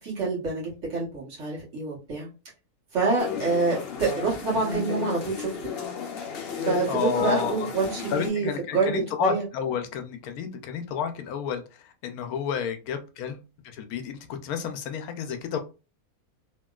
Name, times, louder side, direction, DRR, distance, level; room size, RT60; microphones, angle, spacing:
voice 1, 0.0-2.3 2.9-5.7 6.6-9.5, right 4 dB, 55° right, -5 dB, 1.4 m, -27 dB
sound 1, 3.2-8.3, left 5 dB, 55° left, 0.7 m, -33 dB
voice 2, 6.9-7.7 8.1-11.6 12.0-15.6, left 7 dB, 80° left, 7 dB, 1.0 m, -30 dB
2.9 x 2.9 x 2.3 m, 0.31 s
omnidirectional pair, 1.5 m